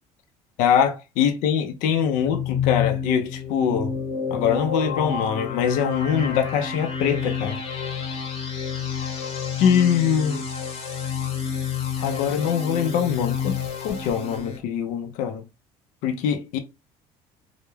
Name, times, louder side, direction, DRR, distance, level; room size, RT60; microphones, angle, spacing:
voice 1, 0.6-3.9 4.3-7.6 8.9-9.2 9.6-10.5 12.0-15.4 16.0-16.6, left 8 dB, 75° left, 0.4 m, -23 dB
sound 1, 2.0-14.6, left 6 dB, 45° left, 0.8 m, -29 dB
2.3 x 2.0 x 3.1 m
cardioid pair, 110°, 13 cm